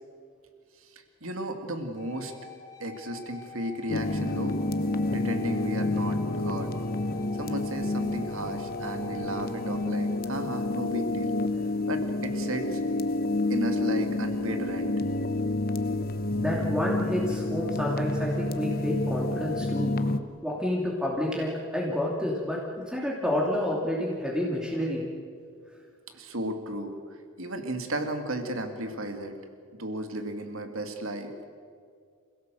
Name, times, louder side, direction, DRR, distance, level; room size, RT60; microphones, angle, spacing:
voice 1, 1.2-2.3 2.8-4.6 5.1-6.7 7.3-11.3 11.9-12.8 13.5-14.9 26.1-27.0 27.4-29.3 29.7-31.5, right 1 dB, 65° right, 6 dB, 2.4 m, -34 dB
sound 1, 2.0-10.2, left 8 dB, 15° left, 2.5 m, -46 dB
sound 2, 3.9-20.2, left 2 dB, 45° left, 0.9 m, -29 dB
voice 2, 16.4-20.1 20.4-25.1, left 1 dB, 5° right, -3 dB, 2.7 m, -29 dB
27.5 x 16.5 x 7.8 m, 2.2 s
head